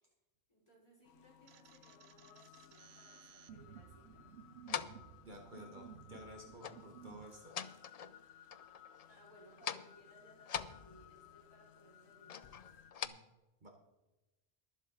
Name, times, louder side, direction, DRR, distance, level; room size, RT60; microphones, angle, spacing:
voice 1, 0.5-4.4 9.1-12.5, equal, 25° left, -6 dB, 5.1 m, -64 dB
sound 1, 1.0-12.9, left 11 dB, 85° left, 0.9 m, -61 dB
sound 2, 1.5-7.3, right 8 dB, 80° right, 0.9 m, -56 dB
sound 3, 4.7-5.1 6.6-6.9 7.2-8.2 8.5-9.2 9.5-10.0 10.4-11.3 12.3-13.1, left 8 dB, 50° left, 0.5 m, -43 dB
voice 2, 5.2-7.6 13.0-13.2 13.6-13.7, right 1 dB, 50° right, 1 dB, 1.4 m, -53 dB
22.0 x 7.4 x 3.9 m, 1.1 s
omnidirectional pair, 1.1 m